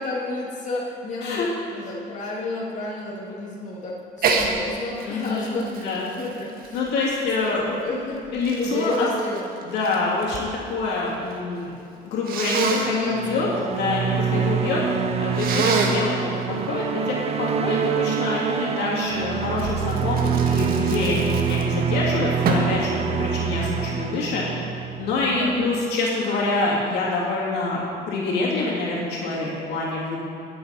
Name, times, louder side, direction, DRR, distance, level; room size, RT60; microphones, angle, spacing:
voice 1, 0.0-6.8 7.4-9.4 12.9-13.5 14.3-14.8 25.4-25.6, left 2 dB, 45° left, -5 dB, 2.2 m, -31 dB
Sneeze, 4.2-4.5 5.0-7.3 8.0-10.5 10.8-11.4 12.3-12.9 15.3-16.1 19.6-21.9 22.4-22.8, right 4 dB, 60° right, 1.5 m, -26 dB
voice 2, 5.0-6.1 6.7-7.6 8.3-8.9 9.7-11.7 12.0-14.8 15.2-16.2 16.7-24.4 25.0-30.2, left 3 dB, 80° left, -5 dB, 2.9 m, -26 dB
sound 1, 13.1-25.6, right 7 dB, 35° right, 0.6 m, -26 dB
19.5 x 7.9 x 4.2 m, 2.6 s
cardioid pair, 110°, 17 cm